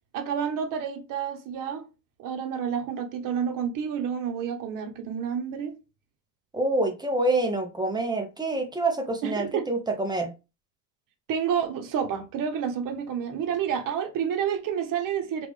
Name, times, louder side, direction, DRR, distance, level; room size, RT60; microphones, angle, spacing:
voice 1, 0.1-1.9 2.2-5.8 9.2-9.7 11.3-15.5, right 8 dB, 45° right, 1.0 m, -29 dB
voice 2, 6.5-10.3, right 2 dB, 10° right, 0.6 m, -26 dB
3.2 x 2.6 x 3.5 m
supercardioid pair, 95°, 47 cm